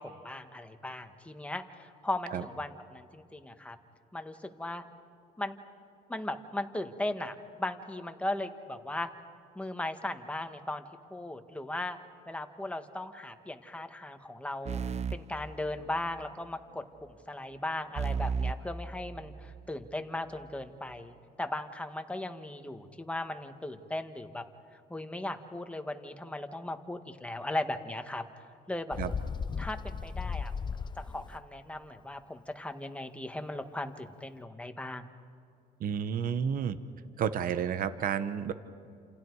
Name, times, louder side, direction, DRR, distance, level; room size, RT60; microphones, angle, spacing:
voice 1, 0.0-3.8 4.1-4.8 5.4-5.6 6.1-9.1 9.5-10.8 11.1-12.0 12.3-24.4 24.7-29.0 29.6-30.5 31.0-35.1, left 1 dB, 5° left, 6 dB, 1.6 m, -37 dB
sound 1, 14.7-16.3 18.0-19.7, right 5 dB, 40° right, 0.8 m, -35 dB
Bird, 28.9-31.4, left 5 dB, 25° left, 0.7 m, -36 dB
voice 2, 35.8-36.8 37.2-38.5, right 8 dB, 55° right, 11 dB, 1.1 m, -31 dB
30.0 x 28.0 x 4.8 m, 2.6 s
cardioid pair, 110°, 17 cm